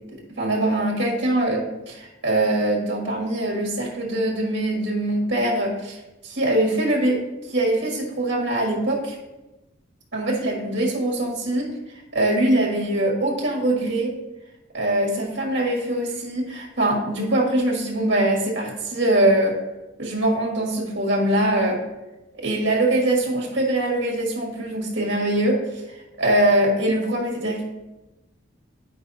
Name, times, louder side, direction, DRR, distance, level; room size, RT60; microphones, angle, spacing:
voice 1, 0.4-6.0 6.2-7.2 7.5-9.2 10.1-11.7 12.1-14.1 14.7-19.6 20.0-21.8 22.4-25.8 26.2-27.6, right 1 dB, 60° right, -1 dB, 1.6 m, -22 dB
10.0 x 5.1 x 2.7 m, 1.0 s
head